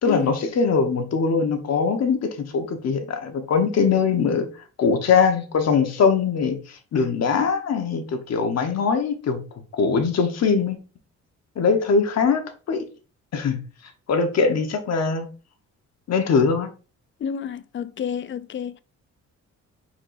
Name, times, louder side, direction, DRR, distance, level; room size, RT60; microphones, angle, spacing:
voice 1, 0.0-4.5 4.8-6.6 6.9-9.4 9.7-10.8 11.6-12.4 12.7-12.8 13.3-13.6 14.1-15.3 16.1-16.7, left 5 dB, 60° left, 1.1 m, -21 dB
voice 2, 17.2-18.8, left 8 dB, 40° left, 0.4 m, -29 dB
4.7 x 4.2 x 2.6 m
cardioid pair, 90°, 30 cm